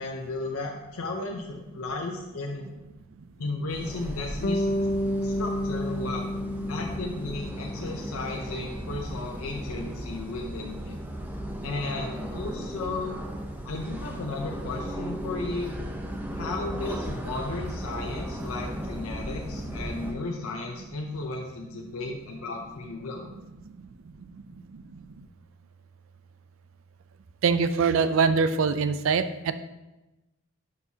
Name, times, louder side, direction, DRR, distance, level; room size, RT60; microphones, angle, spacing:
voice 1, 0.0-2.7 3.4-4.7 5.2-6.3 6.7-11.0 11.6-13.2 13.6-15.8 16.3-23.3, left 3 dB, 90° left, 1 dB, 0.7 m, -34 dB
sound 1, 3.7-20.1, equal, 10° right, 0.6 m, -36 dB
Bass guitar, 4.4-8.5, left 1 dB, 45° left, 0.4 m, -30 dB
voice 2, 27.4-29.5, right 5 dB, 70° right, 11 dB, 0.4 m, -23 dB
11.0 x 4.6 x 2.8 m, 1.0 s
head